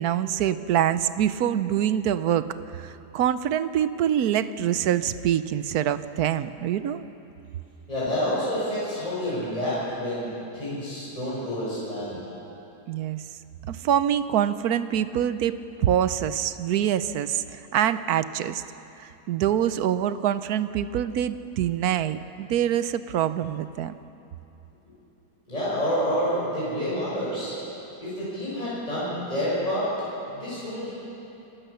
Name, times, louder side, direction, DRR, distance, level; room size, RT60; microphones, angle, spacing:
voice 1, 0.0-2.5 2.7-7.0 12.9-13.2 13.6-18.6 19.0-23.9, right 10 dB, 75° right, 13 dB, 1.2 m, -25 dB
voice 2, 7.9-12.2 25.5-27.7 28.0-29.9 30.3-30.9, equal, 25° left, -10 dB, 6.3 m, -28 dB
26.5 x 15.0 x 6.9 m, 2.9 s
omnidirectional pair, 1.7 m